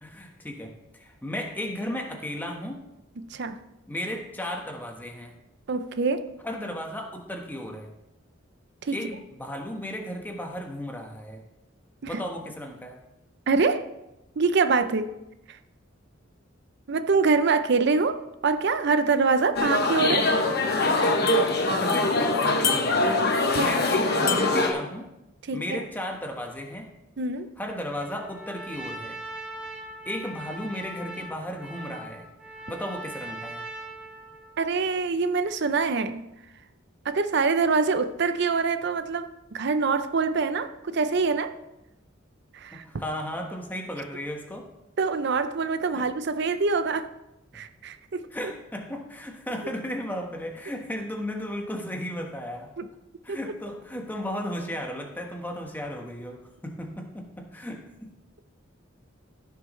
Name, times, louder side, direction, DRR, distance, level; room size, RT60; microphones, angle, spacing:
voice 1, 0.0-2.8 3.9-5.3 6.4-7.9 8.9-11.4 12.1-13.0 21.5-25.1 25.5-26.9 27.6-29.2 30.0-32.2 32.7-33.6 42.7-44.7 45.9-46.1 48.3-52.7 53.2-58.1, left 1 dB, 10° left, 2 dB, 1.2 m, -35 dB
voice 2, 3.2-3.6 5.7-6.3 8.8-8.9 12.0-12.2 13.5-13.9 14.4-15.1 16.9-20.3 23.5-23.7 25.5-25.8 27.2-27.5 34.6-36.2 37.0-41.5 42.5-42.8 45.0-47.1 47.5-48.2 52.8-52.9 53.3-53.4, right 4 dB, 55° right, 11 dB, 0.5 m, -25 dB
sound 1, 19.6-24.7, left 2 dB, 50° left, 1.1 m, -23 dB
Trumpet, 27.8-34.6, right 2 dB, 5° right, 1.9 m, -40 dB
15.5 x 6.6 x 3.1 m, 0.90 s
head